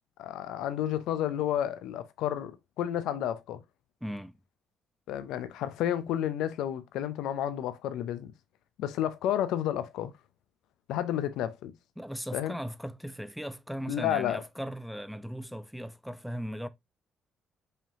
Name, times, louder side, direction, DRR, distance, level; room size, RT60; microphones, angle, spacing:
voice 1, 0.2-3.6 5.1-8.3 8.8-10.1 10.9-11.7 12.3-12.6 13.9-14.4, left 11 dB, 85° left, 0.5 m, -31 dB
voice 2, 4.0-4.4 12.0-16.7, equal, ahead, 0.5 m, -38 dB
5.0 x 2.9 x 2.7 m
cardioid pair, 75°, 0 cm